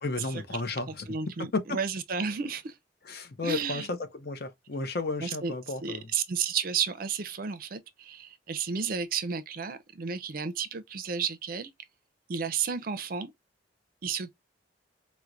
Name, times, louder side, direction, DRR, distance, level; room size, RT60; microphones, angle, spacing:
voice 1, 0.0-1.1 1.4-1.8 3.0-6.1, left 3 dB, 55° left, 0.7 m, -33 dB
voice 2, 0.9-2.7 3.4-3.9 5.2-5.5 5.8-11.7 12.3-13.3 14.0-14.3, right 6 dB, 50° right, 0.5 m, -32 dB
4.4 x 2.1 x 2.4 m
head